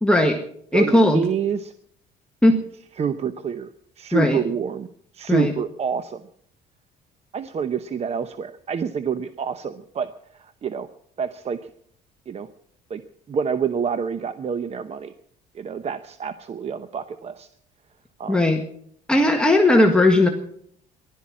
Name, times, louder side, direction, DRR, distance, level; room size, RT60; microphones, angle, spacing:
voice 1, 0.0-0.4 0.7-1.2 2.4-2.6 4.1-4.4 5.3-5.5 18.3-18.6 19.1-20.3, left 1 dB, 5° left, 2 dB, 1.6 m, -17 dB
voice 2, 0.7-1.7 3.0-3.7 4.0-4.9 5.1-6.2 7.3-10.9 11.2-11.7 12.3-12.5 12.9-13.0 13.3-15.1 15.5-17.5 18.2-18.4, right 6 dB, 40° right, 11 dB, 0.8 m, -27 dB
15.5 x 12.0 x 7.5 m, 0.66 s
cardioid pair, 110°, 17 cm